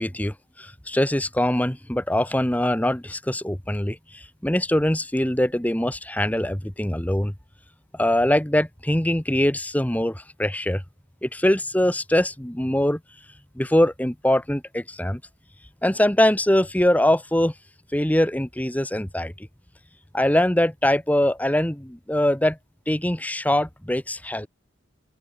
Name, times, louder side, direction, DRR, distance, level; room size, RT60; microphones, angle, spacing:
voice 1, 0.0-7.3 7.9-10.8 11.2-13.0 13.5-15.2 15.8-17.5 17.9-19.5 20.1-22.6 22.9-24.5, left 1 dB, 10° left, 1.2 m, -23 dB
open air
head